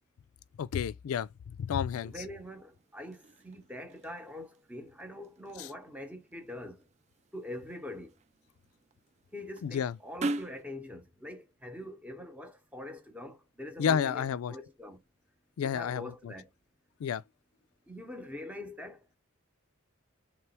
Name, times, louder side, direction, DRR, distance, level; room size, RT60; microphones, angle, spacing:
voice 1, 0.6-2.1 5.6-5.7 9.6-9.9 13.8-14.5 15.6-16.3 17.0-17.2, left 8 dB, 90° left, 0.3 m, -31 dB
sound 1, 1.9-10.6, right 2 dB, 30° right, 0.3 m, -43 dB
voice 2, 2.0-6.9 7.3-8.1 9.3-15.0 15.6-16.5 17.9-19.0, left 1 dB, 5° right, 0.9 m, -44 dB
3.4 x 3.1 x 4.3 m
head